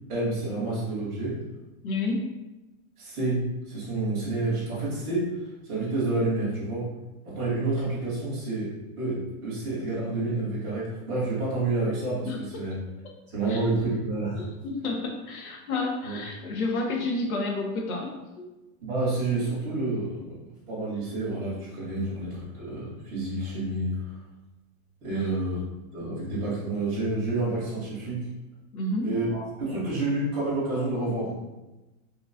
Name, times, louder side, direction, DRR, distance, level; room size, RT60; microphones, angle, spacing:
voice 1, 0.1-1.4 3.0-5.3 5.6-6.9 7.2-12.7 13.3-14.4 16.0-16.2 18.8-20.4 20.7-24.1 25.0-25.6 25.9-28.3 29.0-31.4, right 2 dB, 5° right, -13 dB, 0.3 m, -29 dB
voice 2, 1.8-2.3 12.3-12.4 13.0-13.1 13.5-13.6 14.4-18.1 18.4-18.5 22.0-22.1 25.1-25.3 28.7-29.1, left 2 dB, 80° left, 0 dB, 1.0 m, -30 dB
3.6 x 3.0 x 2.5 m, 1.0 s
supercardioid pair, 165°, 43 cm